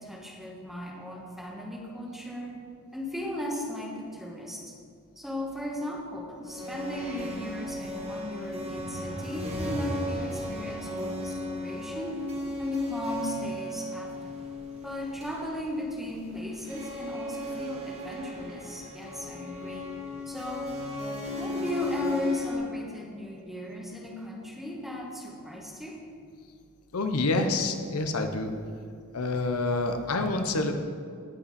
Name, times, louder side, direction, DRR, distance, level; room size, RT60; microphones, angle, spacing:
voice 1, 0.0-2.6 2.9-4.7 5.2-12.1 12.6-14.4 14.8-19.9 20.2-20.7 21.4-26.0, left 1 dB, ahead, -2 dB, 1.4 m, -36 dB
sound 1, 6.4-22.6, left 1 dB, 30° right, 1.9 m, -35 dB
voice 2, 26.9-28.5 29.1-30.8, left 2 dB, 85° left, 6 dB, 0.8 m, -27 dB
17.0 x 5.7 x 4.2 m, 2.2 s
head